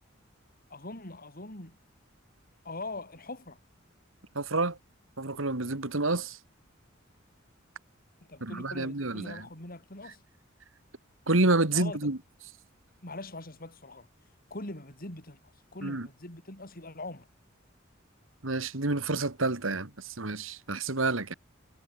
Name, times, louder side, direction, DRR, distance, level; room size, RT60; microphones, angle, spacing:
voice 1, 0.7-1.8 2.6-3.6 8.2-10.2 11.7-12.0 13.0-14.1 14.5-15.4 15.7-17.3, left 2 dB, 45° left, 5.8 m, -42 dB
voice 2, 4.4-4.8 5.2-6.4 8.4-9.4 11.3-12.2 15.8-16.1 18.4-21.3, right 2 dB, 80° right, 2.2 m, -29 dB
head